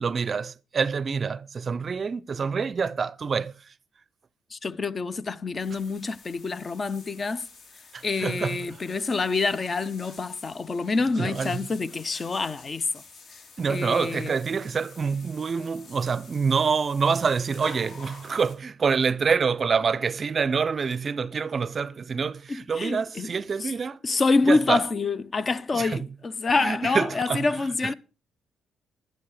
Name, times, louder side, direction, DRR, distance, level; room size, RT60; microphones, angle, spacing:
voice 1, 0.0-3.5 7.9-8.6 11.2-11.6 13.6-24.0 24.5-24.8 25.7-26.0 26.6-27.5 27.8-27.9, right 5 dB, 40° right, 0.5 m, -26 dB
voice 2, 4.5-7.4 8.0-12.9 13.7-14.3 22.5-23.3 23.6-23.7 24.0-27.9, left 3 dB, 35° left, 0.7 m, -27 dB
sound 1, 5.6-18.6, left 4 dB, 60° left, 3.6 m, -49 dB
11.5 x 11.0 x 4.9 m
cardioid pair, 90°, 0 cm